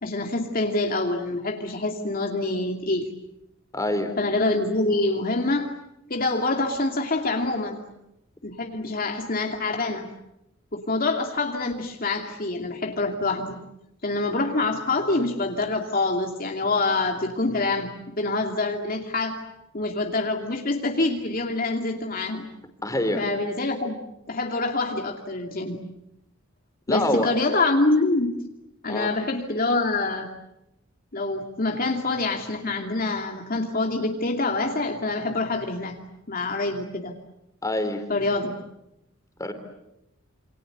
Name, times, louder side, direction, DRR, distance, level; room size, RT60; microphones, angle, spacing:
voice 1, 0.0-3.1 4.2-5.7 6.1-7.8 8.4-10.1 10.7-13.6 14.0-19.4 19.7-22.5 23.2-25.8 26.9-28.3 28.8-30.3 31.1-36.0 36.3-37.1 38.1-38.5, left 2 dB, 45° left, 2 dB, 2.5 m, -26 dB
voice 2, 3.7-4.1 22.8-23.2 26.9-27.3 28.9-29.1 37.6-38.0 39.4-39.5, left 1 dB, 15° left, 6 dB, 3.8 m, -25 dB
28.0 x 26.0 x 8.1 m, 0.85 s
head